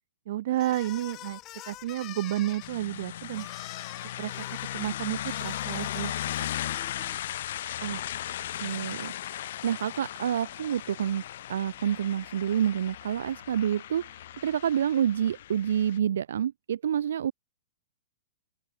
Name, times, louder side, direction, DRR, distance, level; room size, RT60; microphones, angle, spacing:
voice 1, 0.3-1.4 1.7-3.5 4.2-4.4 4.7-6.1, right 14 dB, 50° right, 0.9 m, -31 dB
sound 1, 0.5-7.2, left 17 dB, 25° left, 3.4 m, -45 dB
sound 2, 2.6-16.0, left 12 dB, 55° left, 2.4 m, -37 dB
voice 2, 8.5-11.2 11.5-17.3, right 9 dB, 80° right, 1.0 m, -28 dB
open air
hypercardioid pair, 165°, 0 cm